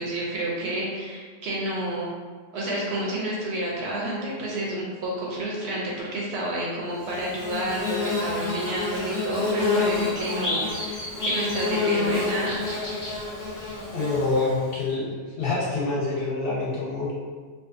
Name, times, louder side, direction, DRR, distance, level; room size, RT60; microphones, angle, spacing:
voice 1, 0.0-2.1 2.5-12.6, right 1 dB, 65° right, -4 dB, 0.8 m, -30 dB
Bird / Buzz, 7.0-14.7, left 3 dB, 20° left, 0.7 m, -28 dB
voice 2, 13.9-17.1, left 3 dB, 55° left, -7 dB, 0.7 m, -26 dB
2.6 x 2.3 x 2.4 m, 1.5 s
omnidirectional pair, 1.3 m